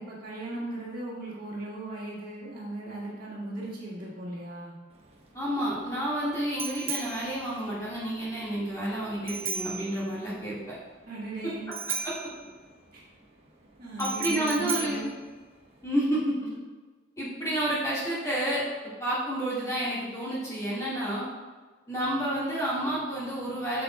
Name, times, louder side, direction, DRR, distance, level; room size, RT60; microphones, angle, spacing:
voice 1, 0.0-4.8 11.1-11.7 12.9-13.0 13.8-15.1, right 2 dB, 45° right, -6 dB, 1.8 m, -37 dB
Bicycle bell, 4.9-16.1, right 5 dB, 30° right, 0.9 m, -38 dB
voice 2, 5.3-10.8 12.0-12.1 14.0-15.1 15.8-16.3 17.2-18.6 19.0-21.3 21.9-23.8, right 1 dB, 15° left, -8 dB, 1.7 m, -30 dB
8.1 x 6.9 x 2.2 m, 1.3 s
head